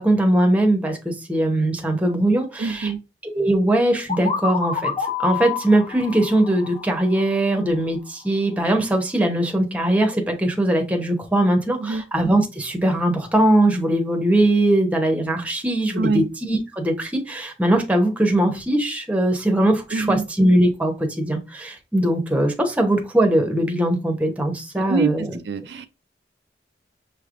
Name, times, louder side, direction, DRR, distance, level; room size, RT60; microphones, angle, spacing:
voice 1, 0.0-2.9 3.3-25.4, right 1 dB, 10° right, 0.9 m, -20 dB
voice 2, 2.6-3.0 11.8-12.1 15.9-16.3 19.9-20.2 24.8-25.9, right 5 dB, 70° right, 0.4 m, -25 dB
sound 1, 4.1-7.8, left 6 dB, 30° left, 0.8 m, -29 dB
6.4 x 3.2 x 2.5 m
head